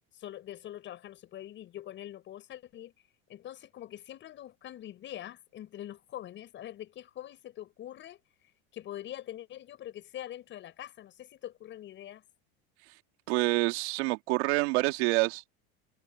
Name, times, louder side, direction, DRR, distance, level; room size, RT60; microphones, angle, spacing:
voice 1, 0.1-2.9 3.3-8.2 8.7-12.2, left 12 dB, 35° left, 7.1 m, -44 dB
voice 2, 13.3-15.4, right 23 dB, 75° right, 2.4 m, -27 dB
cardioid pair, 155°, 33 cm